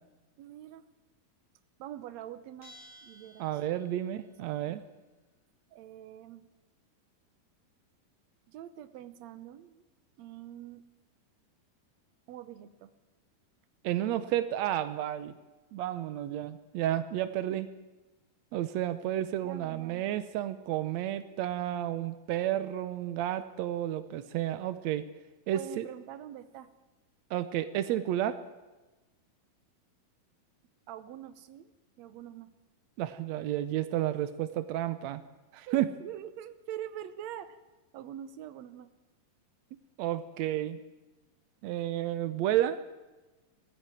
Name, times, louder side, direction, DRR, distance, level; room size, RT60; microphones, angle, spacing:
voice 1, 0.4-0.9 1.8-2.7 3.0-3.6 4.5-4.8 5.7-6.5 8.5-9.8 10.2-10.8 12.3-12.9 17.5-17.6 19.4-20.0 25.5-26.7 30.9-31.7 32.0-32.5 35.7-37.6 37.9-38.9, right 11 dB, 75° right, 12 dB, 1.6 m, -44 dB
Bell, 2.6-4.2, equal, 50° left, 6.3 m, -55 dB
voice 2, 3.4-4.8 13.8-15.4 15.7-17.7 18.5-25.0 25.5-25.8 27.3-28.4 33.0-35.2 35.5-35.9 40.0-40.8 41.6-42.8, right 12 dB, 90° right, 11 dB, 1.5 m, -31 dB
20.0 x 15.5 x 9.2 m, 1.1 s
omnidirectional pair, 4.3 m